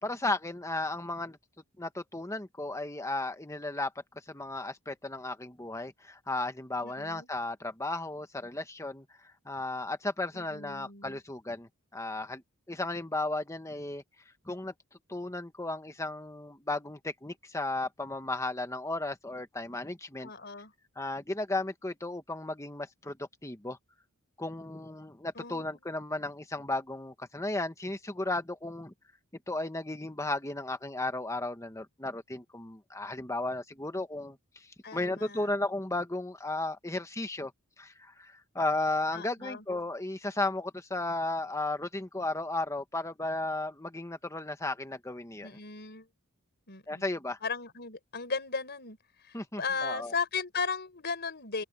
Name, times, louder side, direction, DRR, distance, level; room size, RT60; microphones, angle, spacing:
voice 1, 0.0-1.4 1.8-3.9 4.3-12.4 12.7-14.0 14.4-14.7 15.1-20.3 21.0-23.8 24.4-28.9 29.5-37.5 37.8-45.5 46.9-47.4 49.3-50.1, left 2 dB, 15° left, 1.3 m, -34 dB
voice 2, 6.8-7.3 10.3-11.2 20.2-20.7 25.3-25.8 34.8-35.5 39.1-39.6 45.4-46.1 46.7-47.0 47.4-51.6, left 5 dB, 50° left, 5.1 m, -36 dB
open air
head